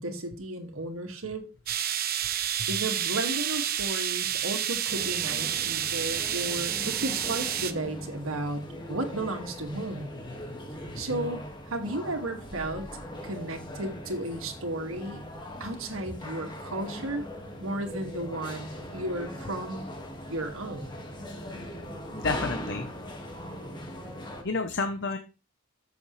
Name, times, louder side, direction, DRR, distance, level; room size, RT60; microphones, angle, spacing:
voice 1, 0.0-1.5 2.7-8.6 8.9-10.1 11.0-15.2 15.6-17.2 17.6-19.9 20.3-21.0, right 1 dB, 90° right, 5 dB, 2.1 m, -34 dB
sound 1, 1.7-7.7, right 10 dB, 45° right, 0.8 m, -29 dB
sound 2, 4.9-24.4, equal, 20° left, 1.8 m, -40 dB
voice 2, 22.1-22.9 24.4-25.2, left 3 dB, 55° left, 7 dB, 0.8 m, -30 dB
14.0 x 7.0 x 3.2 m, 0.34 s
head